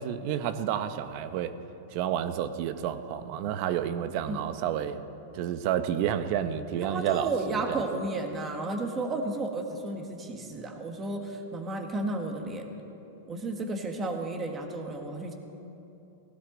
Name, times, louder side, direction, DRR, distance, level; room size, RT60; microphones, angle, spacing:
voice 1, 0.0-1.6 1.9-5.0 5.3-7.8, right 10 dB, 50° right, 11 dB, 0.9 m, -30 dB
voice 2, 6.7-12.7 13.3-15.3, right 2 dB, 20° right, 3 dB, 1.7 m, -33 dB
18.0 x 16.0 x 4.0 m, 2.9 s
supercardioid pair, 135°, 0 cm